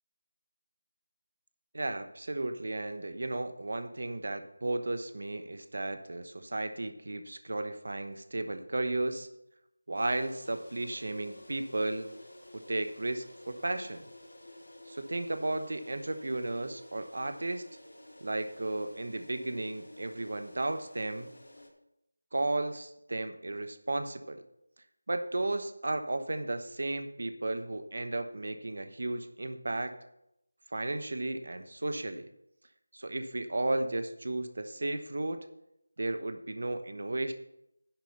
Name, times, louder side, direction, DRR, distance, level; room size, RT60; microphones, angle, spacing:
voice 1, 1.7-9.3 9.9-12.1 12.5-14.0 14.9-17.6 18.2-21.3 22.3-24.4 25.1-29.9 30.7-32.3 32.9-35.4 36.0-37.3, right 2 dB, 40° right, 8 dB, 1.1 m, -34 dB
sound 1, 9.9-21.7, left 1 dB, 60° left, 4.1 m, -52 dB
11.0 x 7.5 x 6.7 m, 0.81 s
figure-of-eight pair, 180°, 0 cm